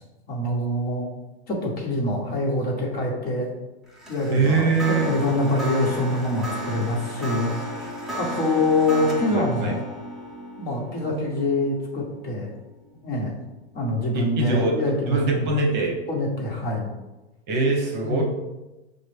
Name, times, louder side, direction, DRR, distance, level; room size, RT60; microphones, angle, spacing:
voice 1, 0.3-1.1 1.5-3.5 4.1-4.7 5.0-7.9 8.2-9.8 10.6-12.5 13.0-13.3 13.7-15.5 16.1-16.9 18.0-18.2, left 2 dB, 30° left, -2 dB, 1.3 m, -25 dB
sound 1, 3.9-13.2, right 1 dB, ahead, 0.7 m, -35 dB
voice 2, 4.3-5.1 9.3-9.7 14.1-16.0 17.5-18.2, right 3 dB, 30° right, 1 dB, 1.0 m, -23 dB
6.3 x 2.1 x 3.3 m, 1.0 s
hypercardioid pair, 120°, 33 cm